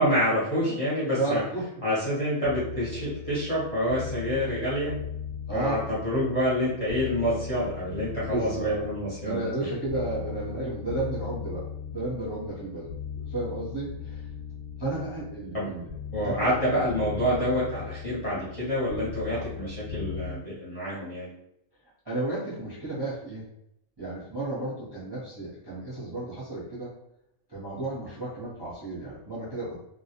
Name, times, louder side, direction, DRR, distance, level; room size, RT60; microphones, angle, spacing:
voice 1, 0.0-1.4 1.8-4.9 5.5-9.5 15.5-15.7 16.1-21.3, equal, 35° left, -9 dB, 0.7 m, -27 dB
voice 2, 1.1-1.6 4.5-4.6 5.5-5.8 6.2-6.3 8.3-8.9 9.2-14.2 14.8-16.5 16.7-16.8 19.3-19.5 22.0-23.4 24.0-26.9 27.5-29.8, right 2 dB, 25° right, -7 dB, 0.6 m, -33 dB
sound 1, 2.4-20.3, left 7 dB, 80° left, 0.4 m, -38 dB
2.2 x 2.1 x 2.8 m, 0.77 s
omnidirectional pair, 1.3 m